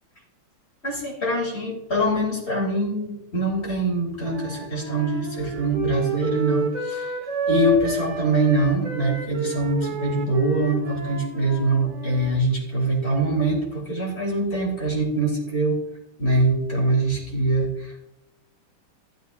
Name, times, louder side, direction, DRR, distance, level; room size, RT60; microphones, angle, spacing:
voice 1, 0.8-7.1 7.5-15.8 16.2-18.0, right 2 dB, 30° left, -3 dB, 3.6 m, -23 dB
Wind instrument woodwind instrument, 4.2-12.3, right 2 dB, 80° right, 3.1 m, -30 dB
14.5 x 13.0 x 2.6 m, 0.91 s
omnidirectional pair, 2.3 m